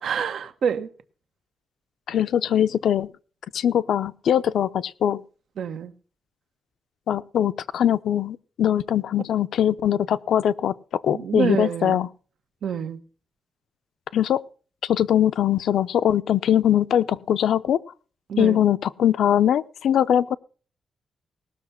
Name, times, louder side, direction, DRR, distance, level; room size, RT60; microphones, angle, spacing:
voice 1, 0.0-0.9 5.6-5.9 11.1-12.0 12.6-13.0 18.3-18.6, right 7 dB, 75° right, 1.2 m, -27 dB
voice 2, 2.1-3.1 3.5-5.2 7.1-12.1 14.1-14.4 14.8-17.8 18.4-20.4, left 10 dB, 90° left, 0.6 m, -21 dB
18.5 x 6.7 x 5.7 m
wide cardioid pair, 160°, 0 cm